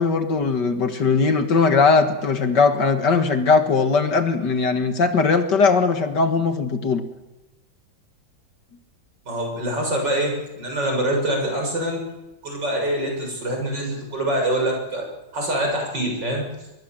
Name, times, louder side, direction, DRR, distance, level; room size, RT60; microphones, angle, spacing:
voice 1, 0.0-7.0, left 4 dB, 55° left, 7 dB, 2.2 m, -19 dB
voice 2, 9.3-12.0 12.4-15.1 15.3-16.5, right 1 dB, 60° right, 1 dB, 7.7 m, -25 dB
24.0 x 22.5 x 7.6 m, 1.1 s
omnidirectional pair, 2.2 m